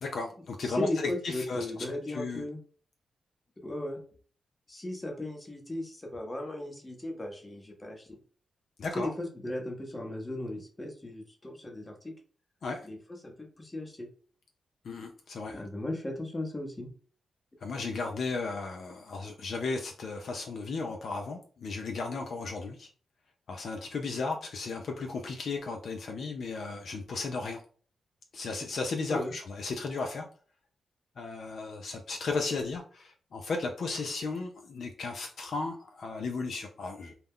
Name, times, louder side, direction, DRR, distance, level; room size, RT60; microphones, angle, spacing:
voice 1, 0.0-1.7 2.1-2.4 8.8-9.1 12.6-12.9 14.8-15.6 17.6-22.9 23.5-27.6 28.3-30.3 31.2-37.1, left 3 dB, 70° left, 3 dB, 0.3 m, -35 dB
voice 2, 0.6-2.6 3.6-4.0 4.7-8.2 8.9-12.1 12.8-14.1 15.5-16.9 29.1-29.3, left 1 dB, 25° left, 3 dB, 0.8 m, -36 dB
2.3 x 2.1 x 3.5 m, 0.43 s
cardioid pair, 65°, 0 cm